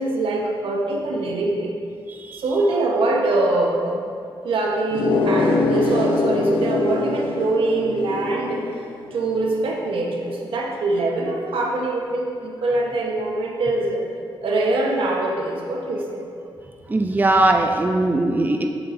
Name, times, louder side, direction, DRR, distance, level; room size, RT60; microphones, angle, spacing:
voice 1, 0.0-1.8 2.4-4.1 4.4-8.6 9.1-14.0 14.4-16.2, right 2 dB, 80° right, -1 dB, 1.0 m, -23 dB
voice 2, 2.1-2.4 16.9-18.7, right 2 dB, 20° right, 4 dB, 0.4 m, -20 dB
sound 1, 4.9-10.2, left 3 dB, 80° left, 0.7 m, -24 dB
8.5 x 6.7 x 2.6 m, 2.4 s
cardioid pair, 85°, 9 cm